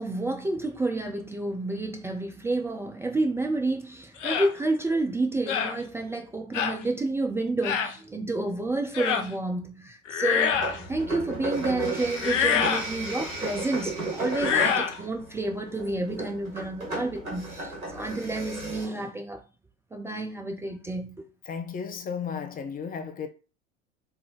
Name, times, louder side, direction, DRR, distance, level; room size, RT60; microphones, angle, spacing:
voice 1, 0.0-19.4 19.9-21.2, right 2 dB, 5° right, 0.3 m, -30 dB
sound 1, 4.2-4.5 5.5-5.8 6.5-6.8 7.6-7.9 8.9-9.3 10.1-10.8 12.2-12.9 14.3-15.0, left 7 dB, 60° left, 0.8 m, -25 dB
sound 2, 10.5-18.9, right 2 dB, 90° right, 1.5 m, -34 dB
voice 2, 21.5-23.3, left 6 dB, 20° left, 0.7 m, -34 dB
3.5 x 3.3 x 3.7 m
figure-of-eight pair, 75°, 41 cm